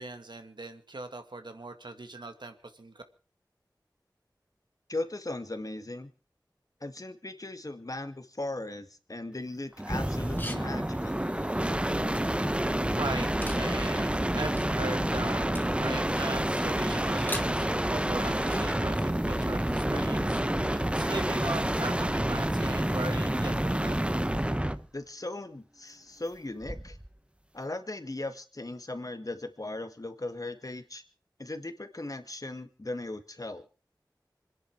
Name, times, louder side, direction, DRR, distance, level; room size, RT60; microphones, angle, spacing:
voice 1, 0.0-3.0 13.0-13.3 13.6-24.0, right 2 dB, 75° right, 8 dB, 2.1 m, -39 dB
voice 2, 4.9-6.1 6.8-11.2 24.9-27.0 27.5-31.0 31.4-33.6, left 2 dB, 50° left, 8 dB, 2.0 m, -38 dB
sound 1, 9.8-24.8 26.6-27.1, right 1 dB, 15° right, 1.0 m, -28 dB
sound 2, 10.2-18.8, left 1 dB, 25° left, 2.1 m, -46 dB
26.0 x 10.5 x 4.7 m, 0.36 s
wide cardioid pair, 40°, 8 cm